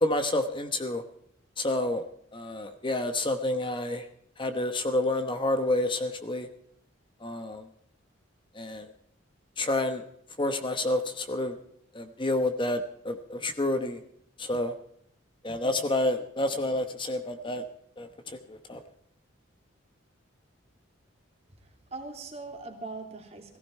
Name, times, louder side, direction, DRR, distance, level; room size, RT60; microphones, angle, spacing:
voice 1, 0.0-1.0 1.6-2.0 2.3-4.0 4.4-6.5 7.2-7.6 8.5-8.9 9.6-10.0 10.4-11.5 11.9-14.0 14.4-14.7 15.4-17.6 18.0-18.8, left 1 dB, 25° left, 8 dB, 1.1 m, -29 dB
voice 2, 21.6-23.6, right 3 dB, 35° right, 3 dB, 3.0 m, -41 dB
18.0 x 15.5 x 4.4 m, 0.70 s
head